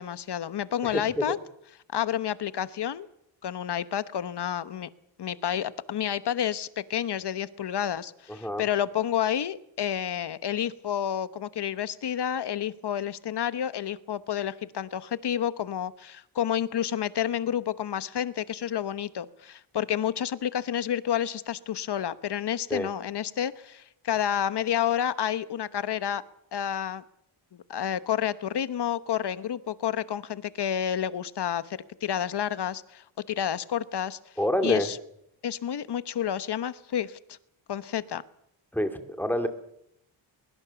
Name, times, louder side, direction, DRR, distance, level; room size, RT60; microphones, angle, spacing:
voice 1, 0.0-1.4 1.9-3.1 3.4-4.9 5.2-26.2 26.5-27.0 27.7-34.2 34.6-35.0 35.4-37.2 37.7-38.2, left 10 dB, 55° left, 15 dB, 1.1 m, -30 dB
voice 2, 0.8-1.2 8.4-8.6 22.7-22.9 34.4-34.9 38.7-39.5, equal, 5° left, 7 dB, 2.3 m, -27 dB
22.0 x 22.0 x 7.0 m, 0.74 s
wide cardioid pair, 125°, 47 cm